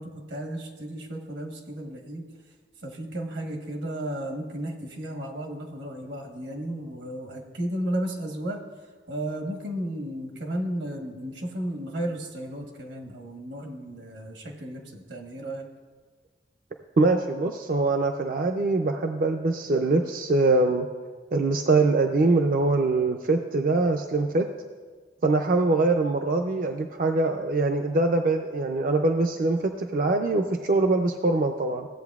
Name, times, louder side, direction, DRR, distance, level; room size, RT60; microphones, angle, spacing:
voice 1, 0.0-2.2 2.8-8.6 9.1-15.6, right 1 dB, 80° right, 2 dB, 1.2 m, -34 dB
voice 2, 17.0-20.9 21.3-24.5 25.2-31.9, right 3 dB, 50° right, 4 dB, 0.4 m, -23 dB
15.5 x 7.9 x 2.4 m, 1.5 s
head